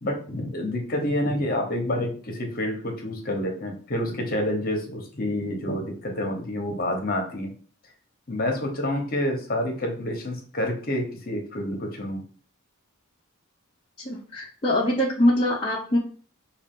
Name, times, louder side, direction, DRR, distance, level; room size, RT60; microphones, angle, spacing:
voice 1, 0.0-7.5 8.3-12.2, left 1 dB, 40° left, 2 dB, 1.0 m, -28 dB
voice 2, 14.0-16.0, left 1 dB, 25° left, -5 dB, 0.7 m, -23 dB
5.7 x 2.4 x 3.7 m, 0.43 s
head